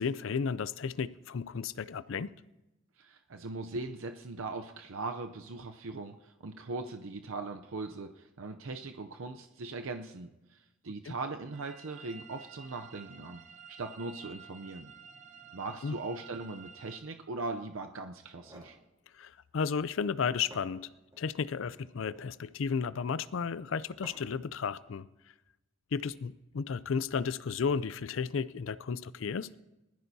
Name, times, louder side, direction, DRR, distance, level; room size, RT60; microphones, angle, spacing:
voice 1, 0.0-2.4 11.1-11.2 15.8-16.0 19.1-20.9 21.2-25.1 25.9-29.5, left 6 dB, 70° left, 0.4 m, -33 dB
voice 2, 3.0-13.4 13.8-14.9 15.5-18.8, right 3 dB, 80° right, 0.6 m, -40 dB
sound 1, 11.5-17.0, right 7 dB, 35° right, 0.9 m, -52 dB
sound 2, 18.2-18.8 20.1-20.2 20.5-21.3 22.0-22.4 24.0-24.5, right 1 dB, 20° right, 3.5 m, -53 dB
20.5 x 14.0 x 2.7 m
head